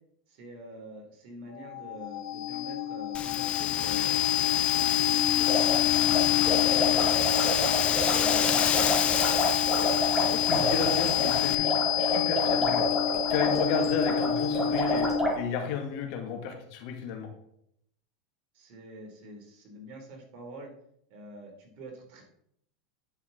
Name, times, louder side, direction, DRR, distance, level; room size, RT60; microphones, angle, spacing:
voice 1, 0.3-5.5 6.3-8.7 18.5-20.7 21.1-22.2, right 1 dB, 55° right, 1 dB, 3.3 m, -46 dB
sound 1, 1.6-15.5, left 11 dB, 80° left, 1.0 m, -27 dB
Wind, 3.1-11.5, left 8 dB, 30° left, 0.7 m, -31 dB
sound 2, 5.4-15.3, left 1 dB, 10° right, 3.1 m, -29 dB
voice 2, 10.3-11.7 12.0-12.9 13.3-15.1 15.3-17.3, left 6 dB, 60° left, 3 dB, 2.2 m, -32 dB
10.0 x 5.9 x 4.0 m, 0.72 s
hypercardioid pair, 100°, 4 cm